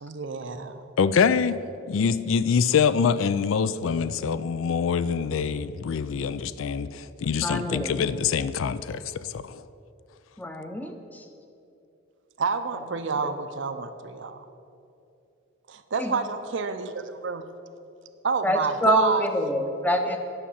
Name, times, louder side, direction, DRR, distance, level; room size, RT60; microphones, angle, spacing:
voice 1, 0.0-0.8 12.4-14.5 15.7-17.5 18.2-19.3, right 4 dB, 60° right, 9 dB, 0.6 m, -28 dB
voice 2, 1.0-1.6 1.9-9.6, left 6 dB, 75° left, 15 dB, 0.4 m, -25 dB
voice 3, 7.4-8.0 10.4-11.2 16.0-16.1 18.4-20.2, equal, 10° left, 5 dB, 0.7 m, -26 dB
10.0 x 5.9 x 7.1 m, 2.7 s
head